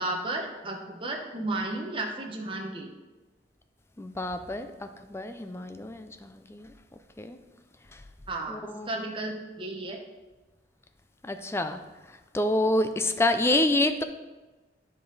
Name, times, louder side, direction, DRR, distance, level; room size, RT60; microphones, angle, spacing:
voice 1, 0.0-2.9 8.3-10.0, right 2 dB, 30° right, 1 dB, 1.0 m, -33 dB
voice 2, 4.0-6.7 7.2-7.4 8.5-8.9 11.2-11.8 12.3-14.0, left 1 dB, 15° left, 8 dB, 0.4 m, -27 dB
9.1 x 5.3 x 3.9 m, 1.2 s
head